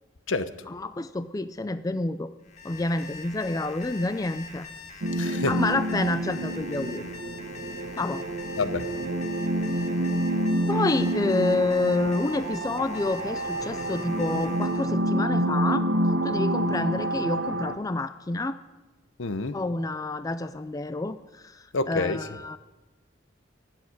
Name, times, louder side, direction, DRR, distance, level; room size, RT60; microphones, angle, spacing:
voice 1, 0.7-2.3 2.6-4.7 5.5-7.0 8.0-8.2 10.7-15.9 16.2-18.6 19.5-22.6, left 2 dB, 20° left, 12 dB, 0.4 m, -28 dB
Alarm, 2.4-14.9, left 4 dB, 35° left, 1.5 m, -43 dB
sound 1, 5.0-17.8, right 1 dB, 65° right, 1.0 m, -28 dB
voice 2, 5.2-5.5 8.6-8.8 19.2-19.6 21.7-22.2, left 3 dB, 70° left, 12 dB, 0.8 m, -27 dB
16.0 x 7.3 x 9.5 m, 1.2 s
head